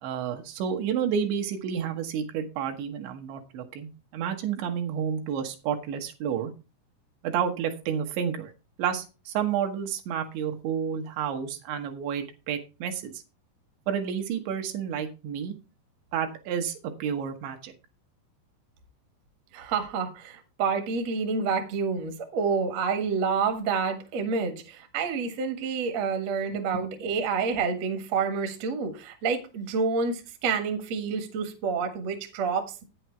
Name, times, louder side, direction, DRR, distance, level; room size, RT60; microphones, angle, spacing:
voice 1, 0.0-6.5 7.2-8.5 8.8-13.1 13.9-15.5 16.1-17.7 26.7-26.8, right 8 dB, 75° right, 3.4 m, -30 dB
voice 2, 19.5-32.8, right 5 dB, 55° right, 1.9 m, -28 dB
9.1 x 7.9 x 4.5 m
omnidirectional pair, 5.3 m